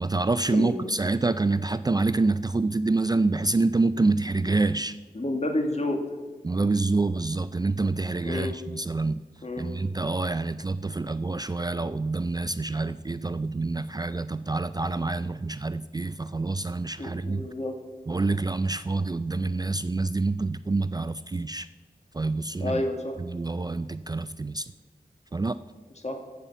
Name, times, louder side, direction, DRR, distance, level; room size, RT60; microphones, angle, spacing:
voice 1, 0.0-5.0 6.4-9.2 9.6-17.4 18.1-21.7 22.1-22.8 23.2-24.7 25.3-25.6, right 3 dB, 25° right, 13 dB, 0.3 m, -27 dB
voice 2, 5.2-6.0 8.3-8.6 9.4-9.7 17.0-17.7 22.6-23.1 26.0-26.2, left 1 dB, 45° left, 3 dB, 1.9 m, -29 dB
14.5 x 5.6 x 6.9 m, 1.3 s
cardioid pair, 50°, 16 cm